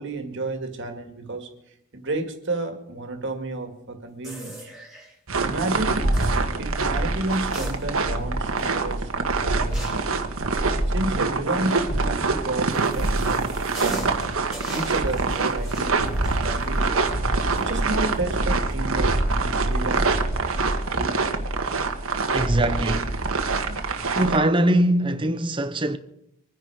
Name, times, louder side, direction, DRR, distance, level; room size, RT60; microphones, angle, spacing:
voice 1, 0.0-1.5 1.9-4.7 5.4-6.0 6.6-9.9 10.5-14.2 14.6-17.1 17.6-20.1 20.6-21.1, right 2 dB, 55° right, 2.1 m, -31 dB
sound 1, 4.2-5.1 6.1-6.4 7.3-8.2 8.6-8.7 9.7-10.2 12.2-18.3 18.7-18.8 19.7-20.0, equal, ahead, 3.1 m, -40 dB
sound 2, 5.3-24.4, right 3 dB, 75° right, 1.5 m, -24 dB
voice 2, 22.3-23.2 24.1-26.0, right 1 dB, 25° right, 0.7 m, -22 dB
24.5 x 10.0 x 4.9 m
head